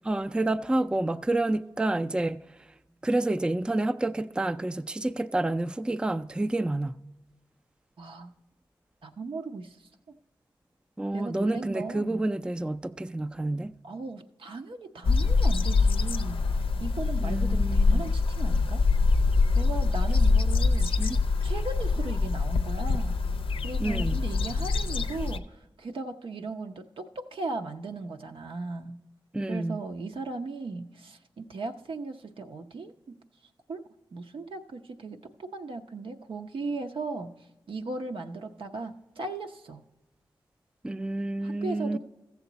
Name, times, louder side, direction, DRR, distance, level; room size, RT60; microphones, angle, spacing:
voice 1, 0.0-2.7 3.0-7.0 11.0-13.7 17.2-18.0 20.8-21.2 23.8-24.2 29.3-29.8 40.8-42.0, right 2 dB, 10° right, 0.4 m, -29 dB
voice 2, 8.0-8.3 9.0-9.8 11.1-12.2 13.8-18.8 19.5-21.1 21.4-23.2 23.6-29.0 29.5-33.2 33.7-33.8 34.1-37.3 37.7-39.8 41.4-42.0, right 3 dB, 75° right, 0.7 m, -37 dB
sound 1, 15.0-25.4, left 4 dB, 85° left, 0.5 m, -24 dB
14.5 x 7.2 x 4.0 m
cardioid pair, 50°, 9 cm